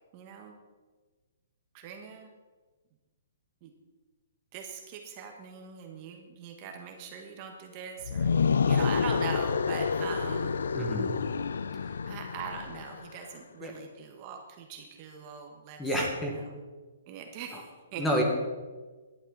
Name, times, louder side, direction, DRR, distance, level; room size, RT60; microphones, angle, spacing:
voice 1, 0.1-0.5 1.7-2.3 3.6-3.7 4.5-8.3 8.7-10.6 12.0-15.8 16.2-16.5 17.1-18.0, right 6 dB, 25° right, 3 dB, 1.3 m, -41 dB
sound 1, 8.0-13.1, left 6 dB, 90° left, 0.5 m, -28 dB
voice 2, 10.7-11.1 11.7-11.9 13.6-13.7 15.8-16.4 17.5-17.6 18.0-18.2, equal, 5° left, 0 dB, 1.6 m, -29 dB
18.0 x 11.5 x 4.0 m, 1.3 s
hypercardioid pair, 170°, 0 cm